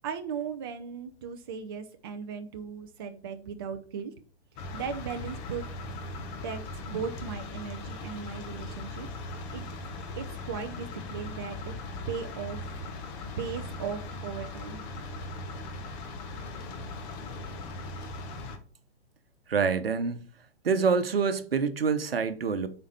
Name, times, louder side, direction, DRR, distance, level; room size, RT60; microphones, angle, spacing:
voice 1, 0.0-4.1 4.7-5.7 6.4-6.6 6.9-9.1 9.5-9.6 10.2-11.7 12.1-12.9 13.4-14.8, right 6 dB, 25° right, 0.4 m, -37 dB
sound 1, 4.6-18.6, left 2 dB, 20° left, 0.8 m, -39 dB
voice 2, 19.5-20.2 20.6-22.7, right 5 dB, 60° right, 1.0 m, -26 dB
8.7 x 4.3 x 4.1 m
figure-of-eight pair, 120°, 33 cm